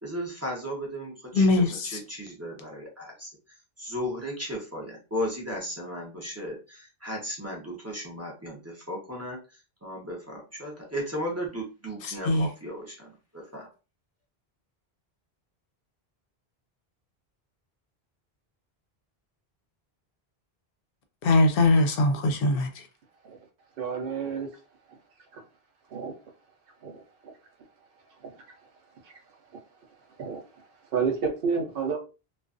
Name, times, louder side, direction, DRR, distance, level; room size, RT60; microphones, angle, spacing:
voice 1, 0.0-13.7, equal, 15° right, 0.6 m, -36 dB
voice 2, 1.3-2.0 12.3-12.5 21.2-22.7, left 2 dB, 70° left, 0.7 m, -21 dB
voice 3, 23.8-24.5 25.3-25.4 25.9-26.1 26.8-27.3 30.2-30.4 30.9-32.0, right 5 dB, 65° right, 0.8 m, -30 dB
2.4 x 2.3 x 2.4 m
omnidirectional pair, 1.0 m